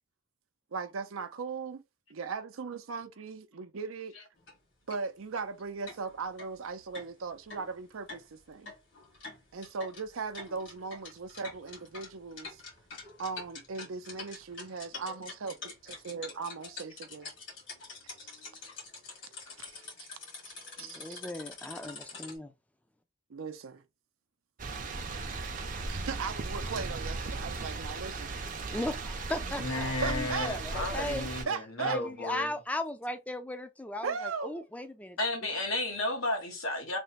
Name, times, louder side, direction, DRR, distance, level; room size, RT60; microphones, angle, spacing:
voice 1, 0.7-1.8 2.1-4.1 4.9-8.7 9.5-12.6 13.2-17.3 18.2-18.3 19.6-20.1 20.4-21.2 23.3-23.8 25.9-28.3 30.0-31.1 31.5-32.0 34.0-34.6, right 5 dB, 85° right, 0.5 m, -38 dB
sound 1, 4.4-4.5 4.9-5.0 5.4-5.5 5.9-22.4, left 4 dB, 65° left, 1.7 m, -46 dB
voice 2, 20.8-22.5 28.7-31.3 31.9-35.2, left 1 dB, 5° left, 0.4 m, -37 dB
sound 2, 24.6-31.4, right 3 dB, 40° right, 0.5 m, -37 dB
voice 3, 29.6-32.6 35.2-37.0, left 2 dB, 90° left, 1.1 m, -33 dB
3.3 x 2.1 x 4.0 m
head